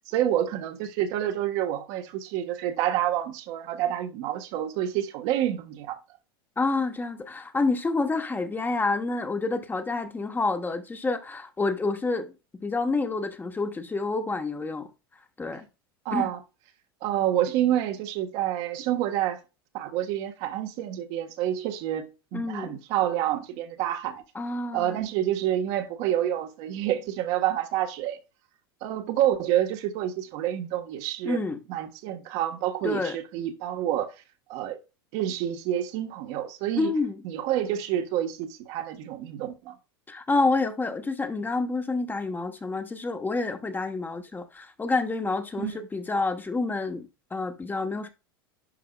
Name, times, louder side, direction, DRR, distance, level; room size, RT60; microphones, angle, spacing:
voice 1, 0.1-6.0 16.0-16.4 17.0-19.4 19.7-24.2 24.7-28.2 28.8-31.4 31.7-34.1 34.5-34.8 35.1-36.9 37.2-39.8 45.6-45.8, right 11 dB, 55° right, 1.4 m, -28 dB
voice 2, 6.6-14.9 15.4-15.6 16.1-16.3 22.3-22.8 24.3-25.0 31.2-31.6 32.8-33.2 36.8-37.2 40.1-48.1, left 3 dB, 15° left, 1.1 m, -28 dB
11.0 x 4.8 x 2.3 m
hypercardioid pair, 95°, 12 cm